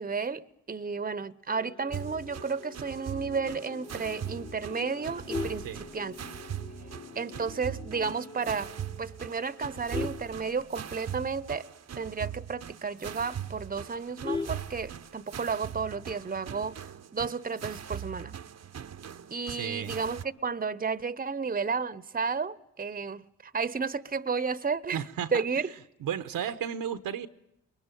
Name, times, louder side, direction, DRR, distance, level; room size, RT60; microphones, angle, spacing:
voice 1, 0.0-6.2 7.1-8.7 9.0-11.7 11.9-16.8 17.1-18.4 19.3-25.0 25.3-25.7, right 5 dB, 25° right, 0.9 m, -32 dB
sound 1, 1.5-10.0, left 3 dB, 55° left, 3.4 m, -48 dB
sound 2, 1.9-20.2, right 9 dB, 50° right, 0.9 m, -41 dB
Vehicle horn car horn honking, 5.0-6.5 7.0-7.2 7.5-7.6 8.0-8.1 8.4-8.8 9.3-11.2 11.5-11.6 11.9-12.0 12.4-12.5 12.9-13.0 13.2-15.3 16.5-16.9, left 4 dB, 15° left, 1.3 m, -37 dB
voice 2, 19.5-20.0 24.9-25.6 26.0-27.3, right 9 dB, 80° right, 1.1 m, -34 dB
22.0 x 21.5 x 9.2 m
supercardioid pair, 45°, 34 cm